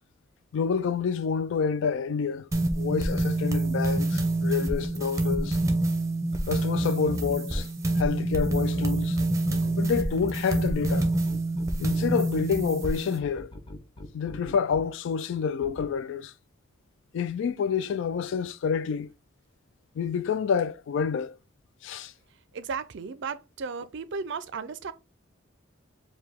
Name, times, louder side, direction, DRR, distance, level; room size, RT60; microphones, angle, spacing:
voice 1, 0.5-2.5 2.8-5.6 6.5-7.7 8.0-9.2 9.8-11.1 11.8-13.5 14.1-16.3 17.1-19.1 20.0-21.4 21.8-22.1, left 6 dB, 65° left, 0.3 m, -28 dB
sound 1, 2.5-13.2, right 2 dB, 15° right, 0.7 m, -27 dB
sound 2, 6.3-7.6 8.4-12.4 13.2-14.8 15.6-15.9, equal, 25° left, 0.6 m, -40 dB
voice 2, 22.5-24.9, right 5 dB, 60° right, 0.4 m, -35 dB
4.7 x 2.2 x 3.5 m
head